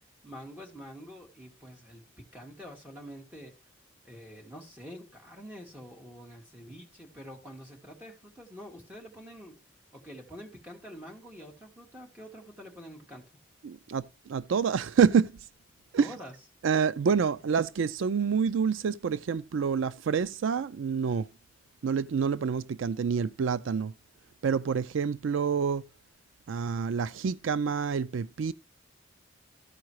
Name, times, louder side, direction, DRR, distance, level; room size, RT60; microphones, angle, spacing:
voice 1, 0.2-3.5 4.0-9.6 9.9-13.3 16.0-16.3, equal, 10° right, 2.1 m, -46 dB
voice 2, 13.6-15.3 15.9-16.1 16.6-21.3 21.8-23.9 24.4-25.8 26.5-28.5, right 6 dB, 80° right, 0.4 m, -27 dB
13.5 x 4.7 x 4.6 m
head